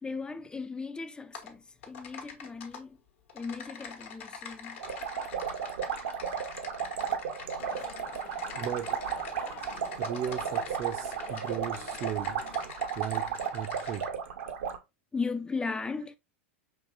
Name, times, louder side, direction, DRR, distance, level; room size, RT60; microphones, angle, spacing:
voice 1, 0.0-3.0 3.3-4.8 15.1-16.2, left 4 dB, 15° left, 0.3 m, -36 dB
Typing, 1.3-1.5 1.8-2.8 3.3-14.1, left 6 dB, 70° left, 1.0 m, -45 dB
sound 1, 4.8-14.8, right 7 dB, 70° right, 0.8 m, -34 dB
sound 2, 7.6-12.6, left 7 dB, 45° left, 0.8 m, -48 dB
voice 2, 8.5-8.9 10.0-12.4 13.0-14.1, right 10 dB, 45° right, 0.5 m, -36 dB
5.4 x 2.9 x 2.5 m
hypercardioid pair, 95°, 7 cm